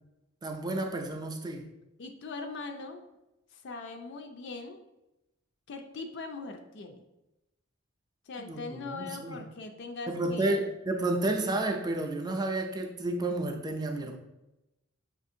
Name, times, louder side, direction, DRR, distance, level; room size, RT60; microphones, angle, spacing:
voice 1, 0.4-1.6 8.4-9.5 10.1-14.2, right 2 dB, 20° right, 3 dB, 0.4 m, -31 dB
voice 2, 2.0-3.0 3.5-4.8 5.7-7.0 8.3-10.6, left 3 dB, 55° left, 4 dB, 0.4 m, -41 dB
6.2 x 2.5 x 2.7 m, 0.95 s
head